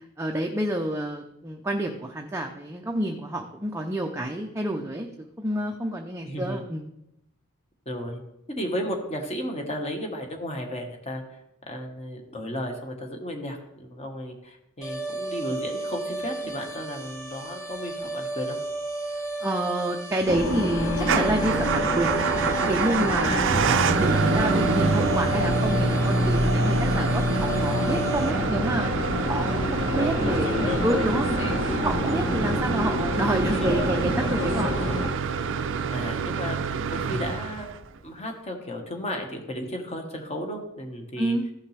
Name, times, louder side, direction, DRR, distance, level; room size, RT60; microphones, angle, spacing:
voice 1, 0.2-5.1 5.4-6.9 19.4-22.2 22.7-23.5 23.8-28.9 29.3-34.8 41.2-41.4, right 1 dB, 10° right, 2 dB, 0.6 m, -28 dB
voice 2, 6.2-6.6 7.8-8.2 8.5-11.4 11.7-18.6 23.0-23.2 30.1-30.7 33.6-33.9 35.9-37.7 38.0-41.4, equal, 30° left, 2 dB, 1.5 m, -34 dB
sound 1, 14.8-28.3, right 2 dB, 15° left, 3.0 m, -34 dB
sound 2, 20.3-35.1, left 1 dB, 60° left, 1.3 m, -27 dB
Motor vehicle (road) / Engine starting / Idling, 21.0-38.0, right 4 dB, 60° right, 0.5 m, -27 dB
15.0 x 5.7 x 3.4 m, 0.83 s
head